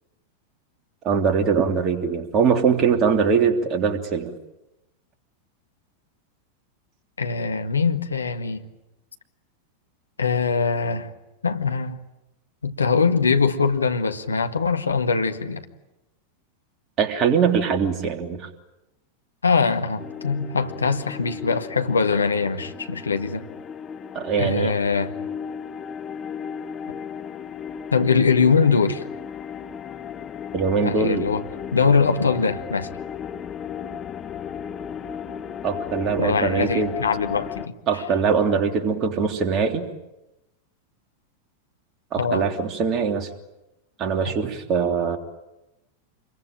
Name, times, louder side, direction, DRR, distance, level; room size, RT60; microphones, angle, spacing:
voice 1, 1.0-4.3 17.0-18.5 24.1-24.7 30.5-31.3 35.6-36.9 37.9-39.9 42.1-43.3 44.0-45.2, right 6 dB, 35° right, 3.2 m, -22 dB
voice 2, 7.2-8.6 10.2-11.1 11.4-12.0 12.6-15.6 19.4-23.4 24.4-25.1 27.9-29.0 30.8-31.4 31.7-32.9 36.2-37.7 42.2-42.5 44.3-44.4, left 5 dB, 75° left, 1.7 m, -22 dB
sound 1, 20.0-37.7, left 8 dB, 25° left, 1.2 m, -35 dB
27.5 x 22.5 x 9.1 m
figure-of-eight pair, 90°, 0 cm